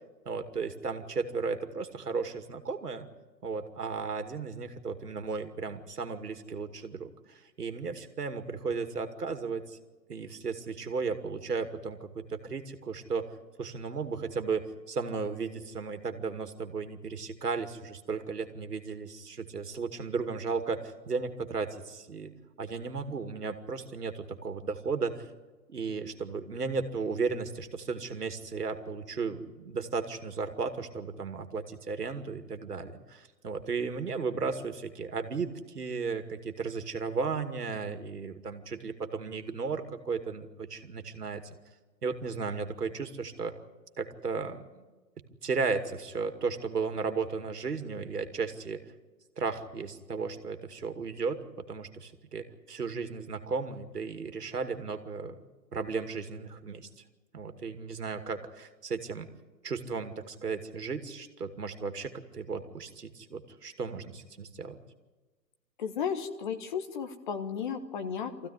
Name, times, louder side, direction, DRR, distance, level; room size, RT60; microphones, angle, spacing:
voice 1, 0.3-3.1 3.4-9.8 10.1-13.3 13.6-25.3 25.7-41.4 42.0-43.5 44.0-44.8 45.4-48.8 49.4-55.4 55.7-56.9 57.3-59.3 59.6-64.8, right 4 dB, 70° right, 7 dB, 2.4 m, -35 dB
voice 2, 65.8-68.5, left 7 dB, 30° left, 8 dB, 1.5 m, -34 dB
23.5 x 15.5 x 9.6 m, 1.2 s
figure-of-eight pair, 135°, 49 cm